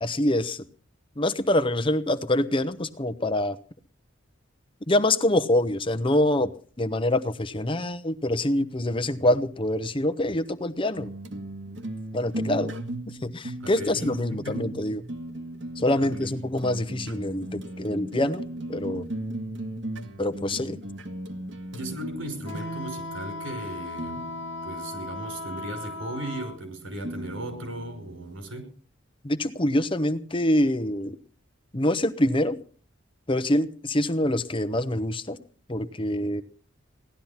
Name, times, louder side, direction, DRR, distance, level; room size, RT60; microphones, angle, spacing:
voice 1, 0.0-0.6 1.2-3.6 4.9-6.5 6.8-11.1 12.1-12.7 13.1-15.0 15.8-18.4 18.7-19.1 20.2-20.8 29.2-31.2 31.7-32.6 33.3-35.4 35.7-36.4, left 1 dB, 25° left, 10 dB, 0.9 m, -25 dB
sound 1, 11.0-28.6, right 1 dB, 65° right, 1.8 m, -38 dB
voice 2, 13.6-14.7 16.0-16.1 21.7-24.3 24.6-28.7, right 1 dB, 85° right, 6 dB, 5.5 m, -37 dB
Wind instrument woodwind instrument, 22.4-26.6, left 3 dB, 70° left, 1.1 m, -37 dB
17.5 x 12.0 x 5.8 m, 0.42 s
head